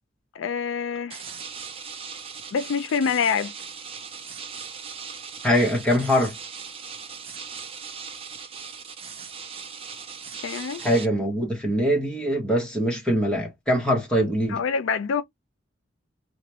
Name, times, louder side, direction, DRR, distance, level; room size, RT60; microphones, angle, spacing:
voice 1, 0.4-1.2 2.5-3.5 10.4-10.8 14.5-15.2, left 6 dB, 80° left, 0.4 m, -26 dB
sound 1, 1.1-11.1, right 6 dB, 30° right, 0.4 m, -39 dB
voice 2, 5.4-6.3 10.8-14.6, equal, 5° left, 0.9 m, -23 dB
2.9 x 2.1 x 2.9 m
head